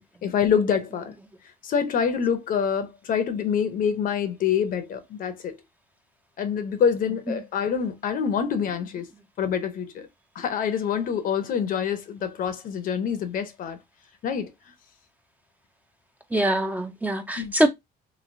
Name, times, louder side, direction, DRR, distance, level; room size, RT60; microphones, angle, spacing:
voice 1, 0.2-1.1 1.6-5.6 6.4-9.1 9.4-10.1 10.3-13.8 14.2-14.5 17.4-17.5, left 7 dB, 55° left, 0.7 m, -26 dB
voice 2, 7.1-7.4 16.3-17.7, right 1 dB, 10° right, 0.5 m, -24 dB
3.1 x 2.9 x 2.6 m
cardioid pair, 110°, 17 cm